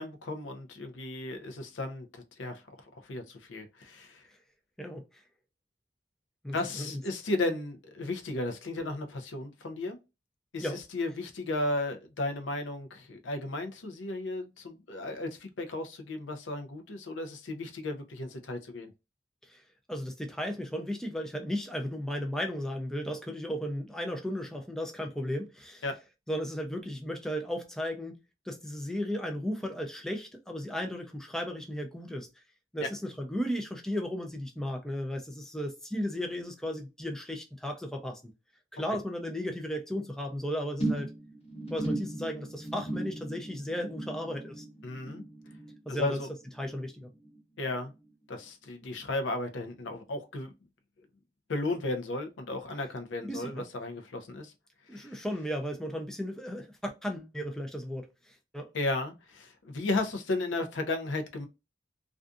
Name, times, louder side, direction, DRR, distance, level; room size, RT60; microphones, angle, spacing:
voice 1, 0.0-2.6 3.0-4.2 6.5-10.0 10.5-18.9 25.8-25.9 32.8-32.9 44.8-45.2 45.9-46.3 47.6-47.9 48.3-50.5 51.5-54.5 54.9-55.1 58.7-61.5, left 2 dB, 85° left, 0.6 m, -34 dB
voice 2, 6.4-7.0 10.6-10.8 19.4-19.6 19.9-25.8 26.3-28.2 28.5-32.3 32.7-38.2 38.7-41.1 41.7-44.6 45.9-46.2 46.6-47.1 53.2-53.7 54.9-58.7, equal, 5° left, 0.3 m, -35 dB
sound 1, 40.8-47.4 47.6-48.1 48.4-48.5, right 1 dB, 30° left, 0.8 m, -37 dB
2.5 x 2.3 x 2.4 m
head